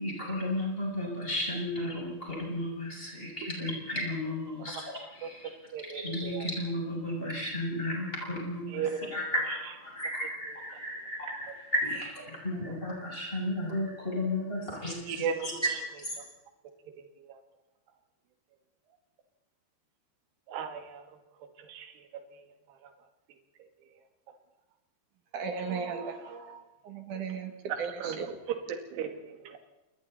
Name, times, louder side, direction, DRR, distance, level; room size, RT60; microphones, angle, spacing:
voice 1, 0.0-16.2, left 1 dB, 10° left, -3 dB, 7.5 m, -34 dB
voice 2, 5.7-6.4 8.7-9.1 15.1-15.5 20.5-21.0 21.7-21.9 27.7-28.4 28.9-29.6, right 7 dB, 70° right, 6 dB, 3.9 m, -35 dB
voice 3, 25.3-27.5 27.8-28.3, right 5 dB, 55° right, 6 dB, 2.8 m, -36 dB
29.5 x 21.5 x 4.1 m, 1.0 s
omnidirectional pair, 5.1 m